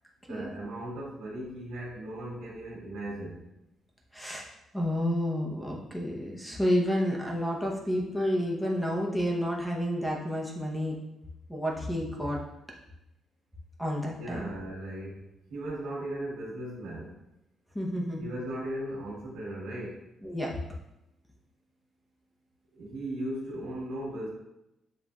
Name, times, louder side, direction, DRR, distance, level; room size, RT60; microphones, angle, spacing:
voice 1, 0.3-3.5 14.1-15.2 15.5-17.1 18.2-20.1 22.7-24.3, right 1 dB, 85° right, -6 dB, 1.5 m, -37 dB
voice 2, 4.1-4.5 4.7-11.0 11.5-12.4 13.8-14.5 17.7-18.3 20.2-20.6, equal, 5° left, -2 dB, 0.8 m, -30 dB
7.2 x 2.5 x 2.3 m, 0.89 s
cardioid pair, 90°, 0 cm